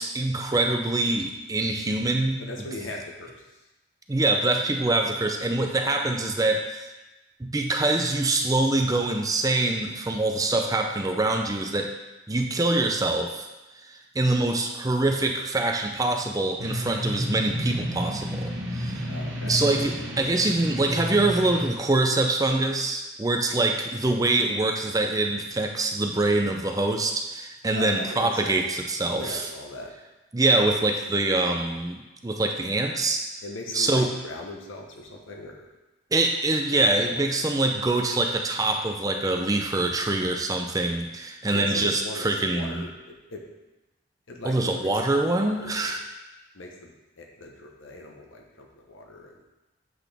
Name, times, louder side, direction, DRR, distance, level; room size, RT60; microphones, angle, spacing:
voice 1, 0.0-2.4 4.1-6.9 7.4-11.9 12.3-13.5 13.8-19.1 19.5-29.5 30.3-33.2 33.7-34.1 36.1-42.8 44.4-46.0, right 2 dB, 20° right, 3 dB, 0.5 m, -24 dB
voice 2, 2.4-3.6 19.1-19.6 27.7-28.6 29.1-29.9 33.4-35.7 36.7-37.2 41.5-43.4 44.3-45.9 46.5-49.3, left 2 dB, 90° left, 1 dB, 1.2 m, -39 dB
sound 1, 16.6-21.7, equal, 80° right, 1.0 m, -31 dB
7.7 x 6.0 x 3.5 m, 1.0 s
head